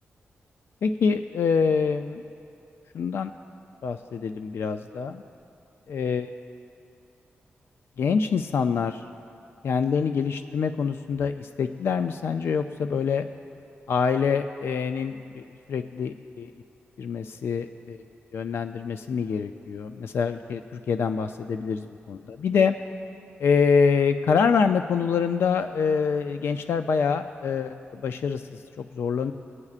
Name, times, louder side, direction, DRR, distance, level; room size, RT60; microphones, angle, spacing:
voice 1, 0.8-2.2 2.9-3.3 3.8-5.2 5.9-6.3 8.0-9.0 9.6-13.3 13.9-16.5 17.0-18.0 18.3-22.8 23.4-29.3, left 6 dB, 70° left, 8 dB, 0.3 m, -25 dB
22.0 x 9.6 x 2.4 m, 2.6 s
wide cardioid pair, 120°, 4 cm